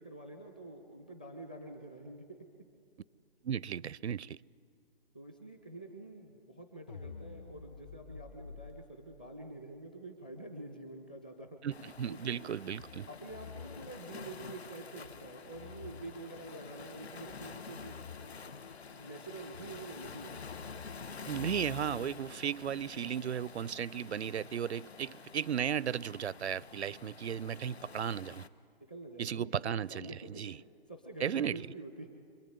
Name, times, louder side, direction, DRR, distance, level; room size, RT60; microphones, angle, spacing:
voice 1, 0.0-2.5 5.1-12.5 13.1-18.0 19.0-20.4 28.9-29.6 29.9-32.1, right 2 dB, 10° left, 0.6 m, -47 dB
voice 2, 3.4-4.4 11.6-13.1 21.3-28.4 29.2-30.6 31.2-31.7, right 8 dB, 90° right, 0.6 m, -35 dB
sound 1, 6.9-8.7, left 4 dB, 55° left, 2.1 m, -47 dB
Waves surf, 11.7-28.5, left 5 dB, 75° left, 1.4 m, -49 dB
sound 2, 12.8-22.3, left 6 dB, 35° left, 1.0 m, -52 dB
25.5 x 23.0 x 9.3 m
hypercardioid pair, 175°, 32 cm